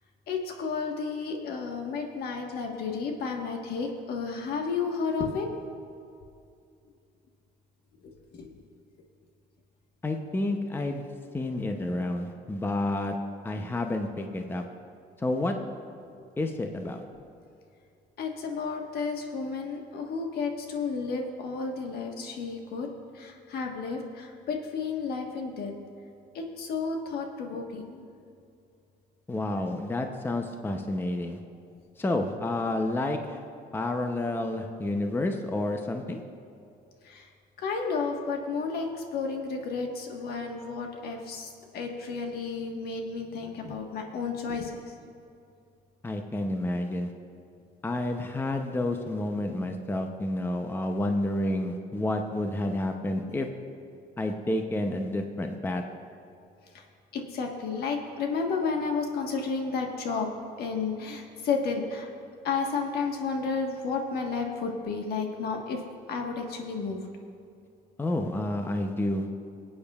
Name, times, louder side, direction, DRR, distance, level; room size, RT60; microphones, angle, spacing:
voice 1, 0.3-5.5 8.3-8.6 18.2-22.9 23.1-25.7 26.3-28.0 37.0-37.2 37.6-44.7 51.5-51.6 53.2-53.3 57.1-60.3 60.6-62.1 62.4-65.8 66.1-67.0, left 4 dB, 65° left, 2 dB, 1.4 m, -32 dB
voice 2, 10.0-11.0 11.3-13.1 13.4-14.6 15.2-15.5 16.4-17.0 29.3-31.4 32.0-33.4 33.7-36.2 46.0-47.1 47.8-53.5 54.2-55.8 68.0-69.3, left 1 dB, 15° left, 5 dB, 0.6 m, -29 dB
24.5 x 8.6 x 2.4 m, 2.5 s
cardioid pair, 110°, 17 cm